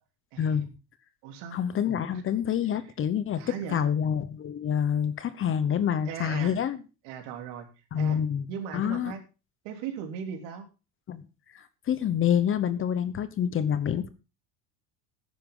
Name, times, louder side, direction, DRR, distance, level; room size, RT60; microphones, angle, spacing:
voice 1, 0.3-0.7 1.2-1.6 2.1-2.2 3.4-3.9 6.0-6.6 7.0-7.7 7.9-8.2 8.5-9.2 9.6-10.7, right 7 dB, 75° right, 5 dB, 3.5 m, -38 dB
voice 2, 1.5-3.4 3.7-6.8 7.9-8.4 8.7-9.1 11.1-11.2 11.9-14.1, left 8 dB, 30° left, 14 dB, 1.0 m, -27 dB
14.0 x 10.5 x 3.8 m, 0.30 s
cardioid pair, 160°, 41 cm